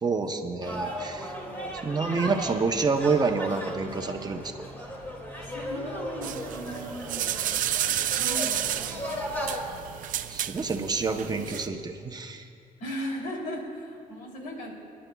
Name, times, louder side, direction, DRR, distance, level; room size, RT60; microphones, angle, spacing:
voice 1, 0.0-1.3 1.8-4.7 10.3-12.5, right 4 dB, 30° right, 4 dB, 0.9 m, -28 dB
sound 1, 0.6-9.6, equal, 15° left, 2.4 m, -36 dB
voice 2, 1.4-2.0 5.3-7.3 7.7-10.0 12.8-14.8, equal, 75° left, -1 dB, 3.1 m, -39 dB
sound 2, 6.2-11.7, right 11 dB, 65° right, 0.5 m, -31 dB
26.0 x 11.0 x 2.4 m, 2.4 s
cardioid pair, 100°, 14 cm